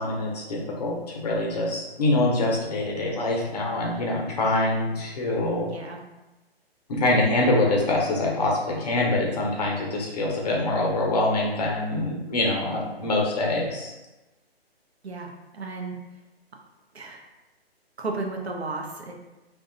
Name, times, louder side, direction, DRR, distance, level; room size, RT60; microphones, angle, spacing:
voice 1, 0.0-5.7 6.9-13.9, left 2 dB, 40° left, -1 dB, 0.6 m, -25 dB
voice 2, 15.0-16.0 16.9-17.2 18.0-19.1, right 3 dB, 85° right, 1 dB, 0.6 m, -33 dB
2.6 x 2.2 x 2.5 m, 1.1 s
figure-of-eight pair, 135°, 31 cm